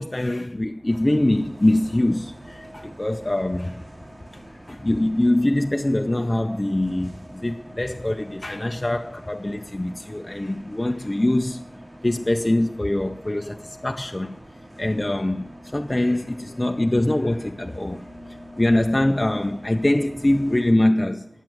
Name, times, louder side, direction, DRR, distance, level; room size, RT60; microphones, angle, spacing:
voice 1, 0.0-3.8 4.5-11.6 12.0-14.4 14.8-18.1 18.6-21.3, left 1 dB, 30° left, 0.5 m, -23 dB
Bus, 0.9-20.7, equal, 45° right, 2.7 m, -44 dB
9.5 x 7.3 x 9.0 m
wide cardioid pair, 65°, 0 cm